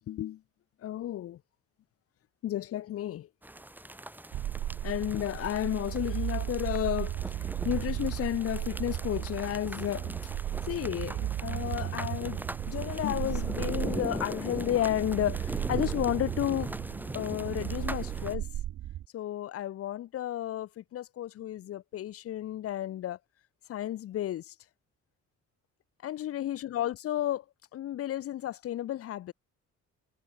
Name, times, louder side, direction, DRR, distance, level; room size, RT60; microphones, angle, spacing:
voice 1, 0.1-0.4 0.8-1.4 2.4-3.3 4.8-7.2 7.6-10.2 10.7-12.4 12.7-16.7 17.1-18.4 19.1-23.2 23.7-24.4 26.0-27.4 27.7-29.3, left 12 dB, 50° left, 0.5 m, -32 dB
sound 1, 3.4-18.4, right 1 dB, 5° right, 1.0 m, -41 dB
sound 2, 4.3-19.1, right 13 dB, 60° right, 0.8 m, -35 dB
cardioid pair, 90°, 30 cm